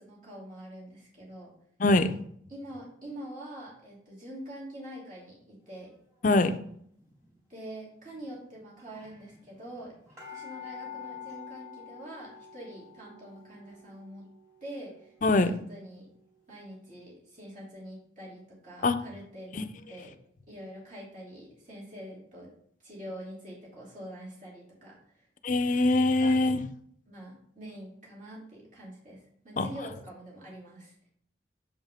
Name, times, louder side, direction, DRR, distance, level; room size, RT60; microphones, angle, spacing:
voice 1, 0.0-1.5 2.5-5.9 7.5-9.9 10.3-14.2 14.6-16.1 16.5-20.1 20.5-22.5 22.8-25.3 26.2-26.3 27.1-30.9, right 1 dB, 45° right, -5 dB, 3.0 m, -45 dB
voice 2, 1.8-2.1 6.2-6.5 15.2-15.5 18.8-19.0 19.5-19.7 25.4-26.6 29.6-29.7, left 2 dB, 45° left, 10 dB, 0.5 m, -23 dB
bell rings, 7.0-7.3 8.2-8.3 8.5-8.6 8.8-16.4 16.9-17.0, left 7 dB, 20° right, 2.6 m, -48 dB
7.1 x 5.5 x 3.6 m, 0.65 s
head